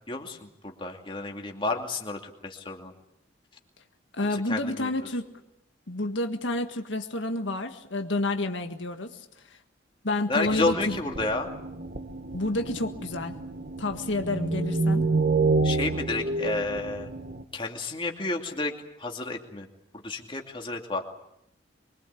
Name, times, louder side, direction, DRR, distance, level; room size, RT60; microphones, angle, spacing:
voice 1, 0.1-2.9 4.3-4.9 10.3-11.5 15.6-17.1 17.5-18.7 19.0-19.7 20.0-21.0, left 2 dB, 25° left, 2 dB, 2.6 m, -31 dB
voice 2, 4.1-5.3 5.9-9.6 10.0-11.0 12.3-13.3 13.8-15.0, left 2 dB, 75° left, 5 dB, 1.7 m, -29 dB
sound 1, 10.5-17.4, right 3 dB, 45° right, 1.6 m, -29 dB
24.5 x 23.0 x 8.5 m, 0.78 s
head